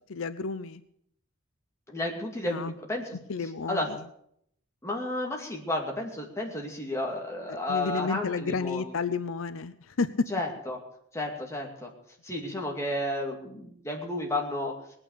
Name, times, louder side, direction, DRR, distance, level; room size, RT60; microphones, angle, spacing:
voice 1, 0.1-0.8 2.5-2.8 3.3-4.1 7.5-10.3, left 4 dB, 75° left, 13 dB, 0.6 m, -31 dB
voice 2, 1.9-3.2 3.7-3.9 4.8-8.8 10.3-10.8 11.1-11.9 12.2-14.7, left 1 dB, 15° left, 0 dB, 2.5 m, -32 dB
19.5 x 8.8 x 6.7 m, 0.71 s
head